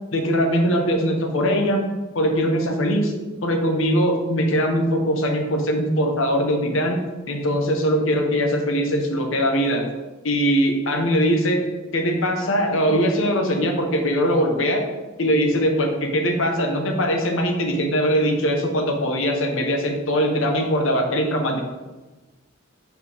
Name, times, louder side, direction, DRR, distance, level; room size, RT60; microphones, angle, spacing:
voice 1, 0.1-1.8 2.1-3.1 3.4-7.0 7.3-9.9 10.2-11.6 11.9-14.8 15.2-21.6, equal, 75° left, 3 dB, 1.0 m, -21 dB
4.8 x 4.6 x 4.9 m, 1.2 s
head